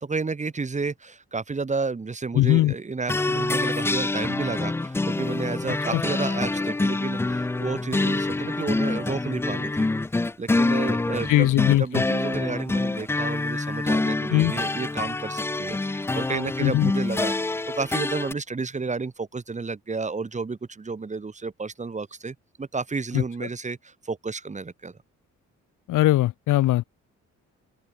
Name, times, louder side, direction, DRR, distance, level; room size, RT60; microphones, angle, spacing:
voice 1, 0.0-9.9 10.4-25.0, right 4 dB, 25° right, 1.5 m, -31 dB
voice 2, 2.3-2.7 5.9-6.0 11.3-12.0 14.3-14.5 16.6-16.9 23.1-23.2 25.9-26.9, left 16 dB, 85° left, 2.0 m, -20 dB
sound 1, 3.1-18.3, left 2 dB, 10° left, 0.3 m, -26 dB
open air
cardioid pair, 90°, 30 cm